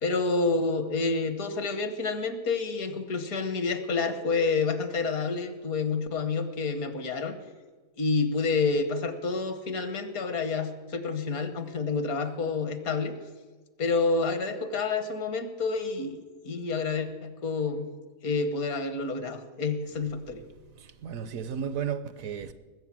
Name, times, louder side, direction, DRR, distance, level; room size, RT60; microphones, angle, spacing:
voice 1, 0.0-7.4 8.0-13.2 13.8-17.9 18.2-20.4, left 4 dB, 65° left, 1.6 m, -29 dB
voice 2, 20.8-22.5, right 7 dB, 65° right, 1.1 m, -34 dB
20.0 x 7.8 x 7.5 m
omnidirectional pair, 1.7 m